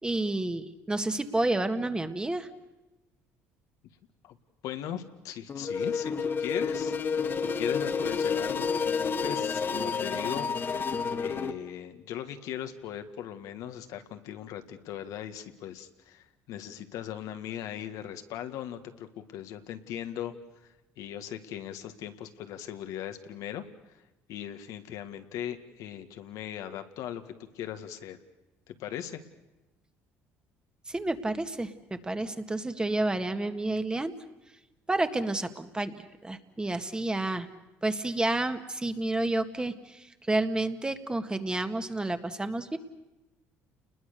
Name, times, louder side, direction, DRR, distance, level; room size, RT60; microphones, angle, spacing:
voice 1, 0.0-2.5 30.9-34.1 34.9-37.5 37.8-42.8, right 2 dB, 15° right, 8 dB, 1.8 m, -30 dB
voice 2, 4.6-10.5 11.2-20.3 20.6-24.0 24.3-28.2 28.7-29.2, left 10 dB, 70° left, 8 dB, 1.8 m, -39 dB
sound 1, 5.5-11.5, left 5 dB, 40° left, 1.7 m, -30 dB
29.5 x 21.0 x 6.8 m, 1.0 s
supercardioid pair, 85°, 6 cm